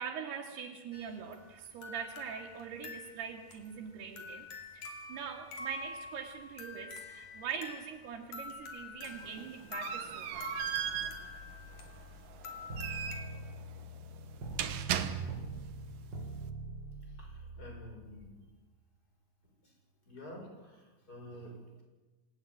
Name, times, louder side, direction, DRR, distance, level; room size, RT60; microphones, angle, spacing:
voice 1, 0.0-4.5 4.7-10.5, right 7 dB, 85° right, -2 dB, 4.0 m, -42 dB
sound 1, 0.9-13.2, left 3 dB, 50° left, 4.1 m, -47 dB
sound 2, 9.0-15.7, right 9 dB, 65° right, 2.7 m, -38 dB
sound 3, 12.7-18.2, right 2 dB, 30° right, 3.7 m, -43 dB
voice 2, 17.2-18.4 19.6-19.7 20.1-21.8, equal, 20° left, 1 dB, 7.0 m, -49 dB
27.0 x 18.0 x 10.0 m, 1.2 s
omnidirectional pair, 4.5 m